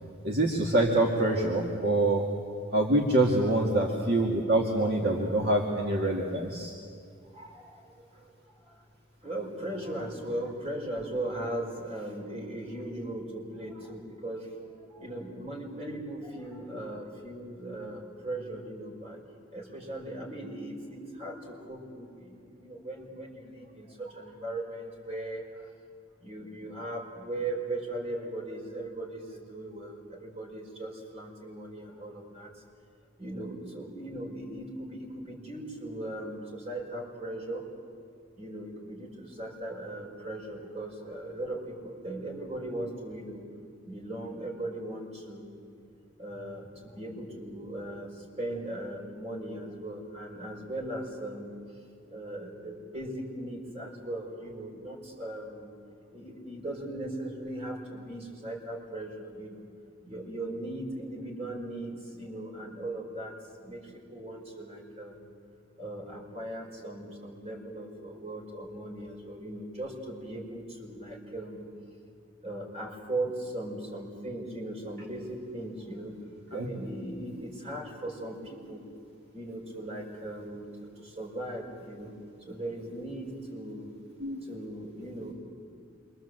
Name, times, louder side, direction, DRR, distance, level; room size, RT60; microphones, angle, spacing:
voice 1, 0.2-2.3 2.7-6.7 76.5-76.7 84.2-84.4, right 2 dB, 55° right, -1 dB, 2.3 m, -25 dB
voice 2, 7.3-7.8 9.2-14.5 14.9-19.2 19.5-25.5 26.2-32.5 33.2-37.6 38.4-43.4 43.8-45.6 46.2-48.1 48.4-51.5 52.1-55.7 56.1-59.7 60.0-63.3 63.6-65.3 65.8-71.7 72.4-76.2 76.5-78.8 79.3-82.1 82.5-83.9 84.5-85.3, right 1 dB, 35° right, -1 dB, 5.3 m, -38 dB
27.5 x 24.0 x 7.9 m, 2.3 s
head